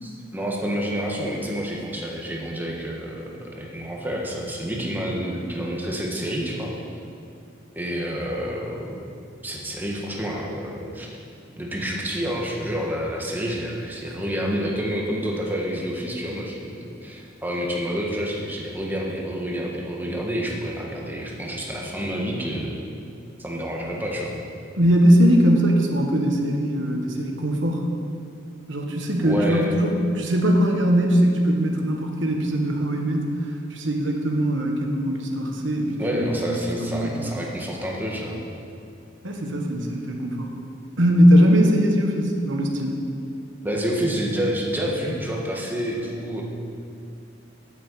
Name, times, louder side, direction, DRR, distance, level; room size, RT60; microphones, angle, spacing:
voice 1, 0.0-6.7 7.7-9.0 9.4-11.1 11.6-16.7 17.0-22.7 23.4-24.4 29.2-29.7 36.0-38.4 43.6-46.4, equal, 10° right, -2 dB, 1.5 m, -28 dB
voice 2, 24.8-27.8 28.7-37.3 39.2-40.5 41.0-43.0, equal, 70° right, 1 dB, 1.4 m, -21 dB
8.9 x 8.2 x 7.8 m, 2.5 s
head